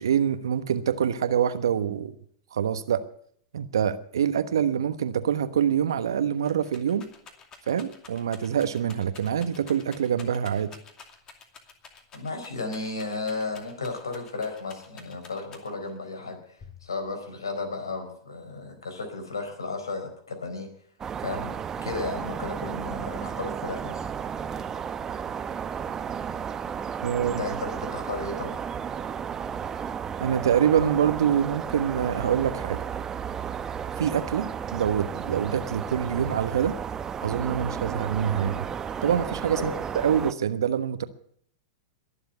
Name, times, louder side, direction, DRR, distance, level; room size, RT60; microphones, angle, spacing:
voice 1, 0.0-2.1 2.5-3.0 3.5-7.1 7.7-10.8 27.0-27.4 30.2-32.8 34.0-36.8 37.2-38.7 39.0-41.0, right 8 dB, 75° right, 12 dB, 1.1 m, -25 dB
Rattle, 6.0-16.0 16.6-17.2, left 5 dB, 30° left, 2.5 m, -50 dB
voice 2, 12.1-20.7 21.2-24.1 27.2-28.6 39.5-39.8, left 3 dB, 80° left, 6 dB, 4.4 m, -34 dB
sound 1, 21.0-40.3, right 7 dB, 25° right, 0.9 m, -33 dB
22.0 x 7.5 x 8.2 m, 0.65 s
hypercardioid pair, 100°, 2 cm